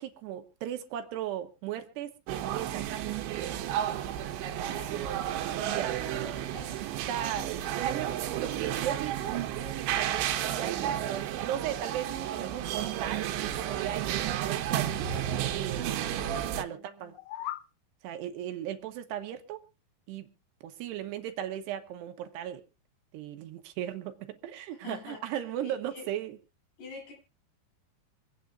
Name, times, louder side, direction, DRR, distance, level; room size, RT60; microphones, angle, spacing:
voice 1, 0.0-3.0 5.6-6.0 7.1-15.1 15.5-17.2 18.0-19.7 20.1-20.3 20.6-22.6 23.1-26.4, right 11 dB, 75° right, 3.1 m, -37 dB
sound 1, 2.3-16.6, right 11 dB, 90° right, 3.5 m, -32 dB
voice 2, 4.4-5.1 5.7-6.8 16.0-17.1 24.8-25.2 25.6-26.0 26.8-27.1, left 4 dB, 70° left, 9.9 m, -47 dB
sound 2, 17.0-17.7, left 14 dB, 85° left, 2.1 m, -38 dB
25.5 x 8.9 x 2.5 m
omnidirectional pair, 5.2 m